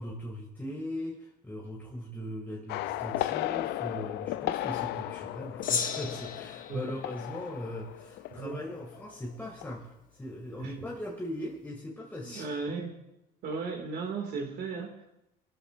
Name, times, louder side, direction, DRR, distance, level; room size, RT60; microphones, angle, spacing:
voice 1, 0.0-12.5, left 1 dB, 10° left, -3 dB, 2.1 m, -39 dB
sound 1, 2.7-9.1 9.4-9.7, left 15 dB, 80° left, 0.4 m, -35 dB
Gong, 5.6-8.3, left 6 dB, 50° left, 1.1 m, -36 dB
voice 2, 8.3-8.6 10.6-10.9 12.2-13.0 13.4-15.2, right 4 dB, 75° right, 2 dB, 2.2 m, -36 dB
23.5 x 12.5 x 2.5 m, 0.89 s
cardioid pair, 110°, 17 cm